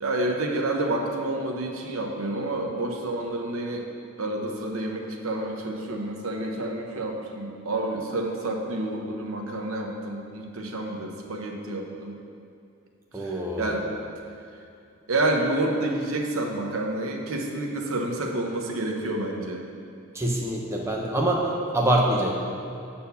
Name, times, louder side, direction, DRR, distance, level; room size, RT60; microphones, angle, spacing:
voice 1, 0.0-3.9 4.2-12.1 13.1-13.9 15.1-19.6, right 2 dB, 85° right, 1 dB, 0.9 m, -29 dB
voice 2, 13.1-14.0 20.1-22.3, right 1 dB, 15° right, -2 dB, 0.7 m, -25 dB
6.9 x 4.3 x 6.8 m, 2.5 s
head